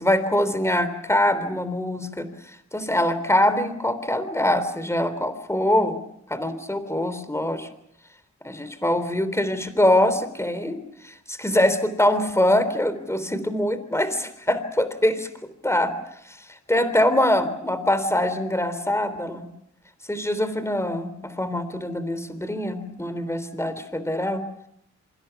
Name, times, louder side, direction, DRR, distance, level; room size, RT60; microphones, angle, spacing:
voice 1, 0.0-2.3 2.7-6.0 6.3-7.7 8.4-15.3 15.6-15.9 16.3-16.4 16.7-19.5 20.1-24.5, left 1 dB, 10° left, 12 dB, 3.5 m, -23 dB
27.0 x 25.0 x 6.0 m, 0.75 s
cardioid pair, 75°, 31 cm